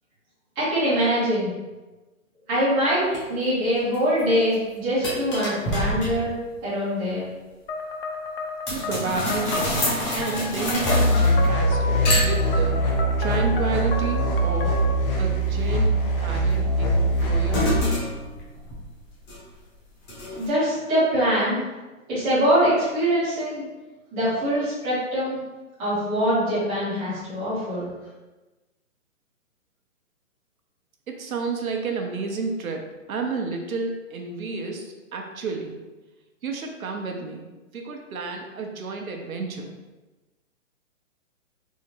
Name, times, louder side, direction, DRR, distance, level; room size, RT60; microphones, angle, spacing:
voice 1, 0.6-1.5 2.5-6.3 6.6-7.3 20.4-21.6 22.1-23.6 24.1-25.4 25.8-27.9, equal, 5° right, -13 dB, 0.4 m, -23 dB
sound 1, 3.1-3.2 3.8-4.2 4.5-4.6 5.0-6.4 8.7-11.6 12.1-12.9 16.5-19.6 20.1-20.5, left 1 dB, 20° left, 0.8 m, -28 dB
sound 2, 7.7-15.1, left 3 dB, 45° left, 0.5 m, -33 dB
voice 2, 8.7-9.8 10.1-12.8 13.2-14.8 15.1-17.9 31.1-35.8 36.4-37.5 37.7-39.6, right 4 dB, 85° right, 2 dB, 0.8 m, -31 dB
sound 3, 10.8-17.8, right 1 dB, 85° left, 0.9 m, -22 dB
3.6 x 2.1 x 3.0 m, 1.1 s
hypercardioid pair, 145°, 41 cm